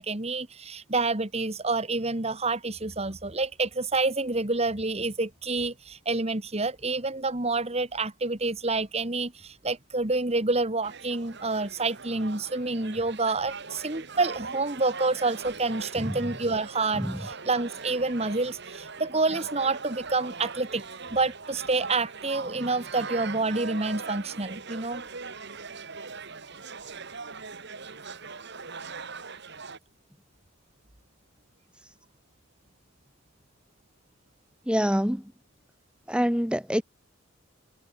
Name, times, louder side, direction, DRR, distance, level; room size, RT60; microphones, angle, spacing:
voice 1, 0.0-20.8 21.1-25.0, right 3 dB, 30° right, 1.9 m, -28 dB
sound 1, 10.8-29.8, right 4 dB, 55° right, 2.8 m, -40 dB
voice 2, 16.0-16.3 16.9-17.2 34.7-35.3 36.1-36.8, equal, 5° right, 2.4 m, -26 dB
head